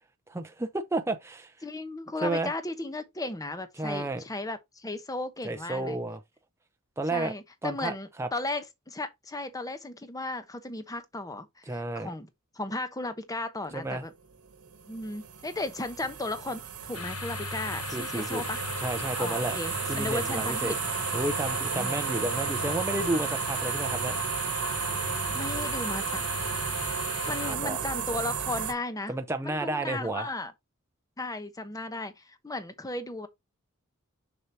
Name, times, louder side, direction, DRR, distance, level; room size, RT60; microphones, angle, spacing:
voice 1, 0.3-1.5 2.2-2.5 3.8-4.2 5.4-6.2 7.0-7.3 7.6-8.3 11.7-12.1 13.7-14.0 17.9-18.4 18.8-19.6 19.9-20.8 21.1-24.2 27.4-27.8 29.1-30.3, right 2 dB, 10° right, 0.6 m, -31 dB
voice 2, 1.6-6.0 7.1-12.3 12.5-14.1 14.9-18.6 19.2-20.8 21.7-21.9 25.3-26.2 27.3-29.1 29.4-30.5 31.2-33.3, left 2 dB, 15° left, 0.8 m, -35 dB
sound 1, 14.3-28.7, right 7 dB, 75° right, 1.2 m, -33 dB
sound 2, 16.9-27.6, left 5 dB, 75° left, 1.0 m, -38 dB
6.5 x 6.0 x 2.7 m
head